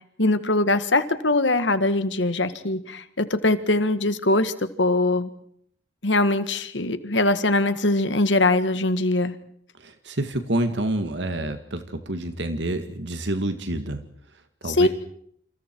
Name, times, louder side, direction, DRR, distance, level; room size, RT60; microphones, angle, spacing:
voice 1, 0.2-5.3 6.0-9.3 14.7-14.9, left 2 dB, 80° left, 11 dB, 1.8 m, -22 dB
voice 2, 9.8-14.1 14.6-14.9, right 1 dB, 75° right, 8 dB, 2.0 m, -28 dB
29.0 x 27.0 x 4.7 m, 0.67 s
head